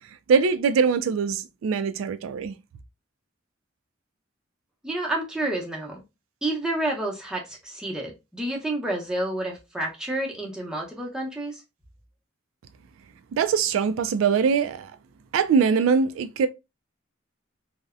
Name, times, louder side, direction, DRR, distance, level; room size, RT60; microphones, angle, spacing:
voice 1, 0.3-2.5 13.3-14.9 15.3-16.5, right 6 dB, 85° right, 0.3 m, -22 dB
voice 2, 4.8-6.0 6.4-11.6, right 1 dB, 5° right, 0.7 m, -29 dB
2.6 x 2.0 x 2.4 m
head